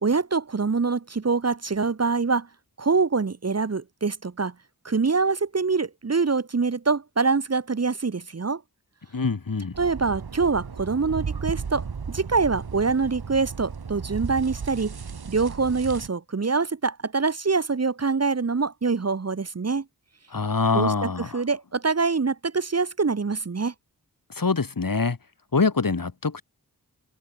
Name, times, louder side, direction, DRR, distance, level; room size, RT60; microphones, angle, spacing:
voice 1, 0.0-2.5 2.8-4.5 4.8-8.6 9.8-14.9 15.3-19.8 20.7-23.7, right 4 dB, 40° right, 1.3 m, -25 dB
voice 2, 9.1-9.7 20.3-21.4 24.4-25.2 25.5-26.4, left 4 dB, 60° left, 5.8 m, -24 dB
sound 1, 9.7-16.1, right 5 dB, 75° right, 3.3 m, -35 dB
cardioid pair, 50°, 38 cm